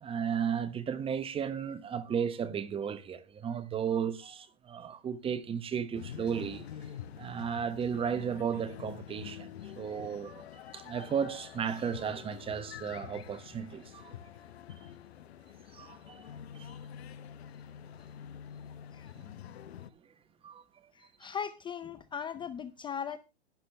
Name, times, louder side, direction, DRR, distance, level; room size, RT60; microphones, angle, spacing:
voice 1, 0.0-6.7 7.2-14.2 15.7-16.7 19.2-19.3 20.4-20.6, right 7 dB, 15° right, 1.0 m, -34 dB
sound 1, 5.9-19.9, left 9 dB, 70° left, 0.9 m, -47 dB
voice 2, 20.9-23.2, left 7 dB, 15° left, 0.5 m, -38 dB
12.0 x 11.0 x 3.3 m
hypercardioid pair, 120°, 33 cm